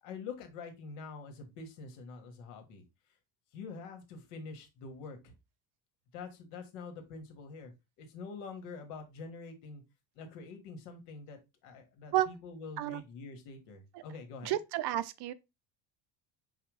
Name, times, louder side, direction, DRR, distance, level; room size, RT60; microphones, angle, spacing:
voice 1, 0.0-2.8 3.5-5.3 6.1-7.7 8.0-9.8 10.1-14.5, left 4 dB, 85° left, 1.5 m, -46 dB
voice 2, 14.4-15.3, right 13 dB, 55° right, 0.5 m, -31 dB
4.8 x 2.2 x 4.7 m
cardioid pair, 115°, 49 cm